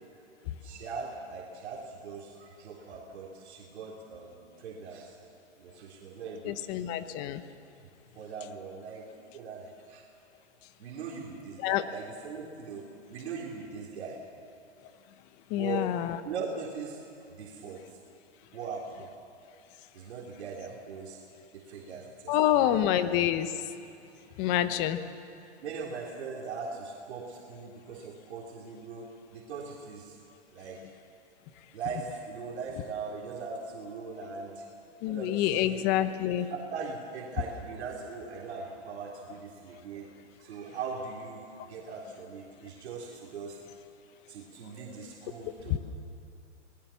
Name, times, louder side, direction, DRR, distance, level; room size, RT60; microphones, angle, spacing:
voice 1, 0.6-5.2 5.6-7.0 7.8-7.9 8.1-9.1 9.3-10.0 10.8-14.2 15.5-18.0 18.5-19.1 19.9-21.2 21.5-22.9 25.6-30.2 30.5-30.8 31.7-34.7 35.1-35.9 36.5-40.1 40.4-43.6 44.3-45.8, right 5 dB, 65° right, -2 dB, 3.6 m, -40 dB
voice 2, 6.4-7.4 11.6-11.8 15.5-16.2 22.3-23.5 24.4-25.0 35.0-36.5 45.7-45.8, left 12 dB, 30° left, 11 dB, 1.0 m, -27 dB
27.5 x 19.5 x 7.1 m, 2.6 s
hypercardioid pair, 145°, 35 cm